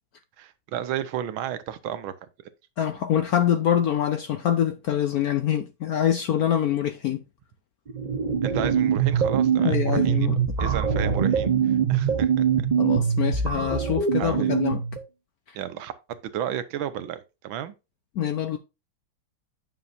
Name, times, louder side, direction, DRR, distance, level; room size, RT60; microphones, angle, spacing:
voice 1, 0.4-2.1 8.4-10.3 10.6-12.7 14.2-14.6 15.6-17.8, right 10 dB, 80° right, 1.6 m, -33 dB
voice 2, 2.8-7.2 9.6-10.4 12.8-14.8 18.2-18.6, left 10 dB, 70° left, 0.9 m, -25 dB
sound 1, 7.9-15.0, right 7 dB, 55° right, 0.5 m, -23 dB
9.4 x 6.3 x 2.6 m
omnidirectional pair, 2.2 m